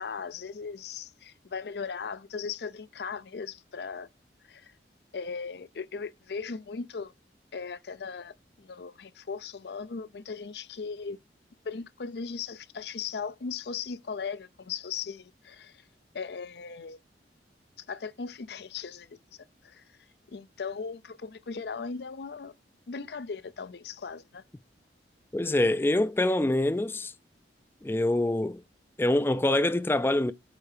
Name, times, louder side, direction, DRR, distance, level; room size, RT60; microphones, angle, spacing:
voice 1, 0.0-4.1 4.5-4.7 5.1-7.1 7.5-11.2 11.6-15.8 16.1-17.0 17.9-19.1 19.6-19.8 20.3-22.5 22.9-24.4, left 5 dB, 65° left, 0.5 m, -38 dB
voice 2, 25.3-27.1 27.8-28.6 29.0-30.3, left 1 dB, 10° left, 0.3 m, -25 dB
8.2 x 2.8 x 4.9 m
head